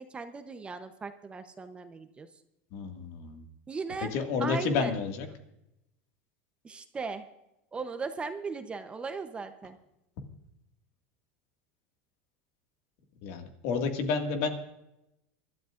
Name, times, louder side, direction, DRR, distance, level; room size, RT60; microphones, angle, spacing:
voice 1, 0.0-2.3 3.7-4.1 4.4-4.9 6.6-7.2 7.7-9.8, right 4 dB, 15° right, 8 dB, 0.8 m, -37 dB
voice 2, 2.7-3.4 4.1-5.3 13.2-14.5, left 5 dB, 65° left, 4 dB, 2.0 m, -30 dB
24.5 x 12.5 x 2.5 m, 0.88 s
supercardioid pair, 135°, 6 cm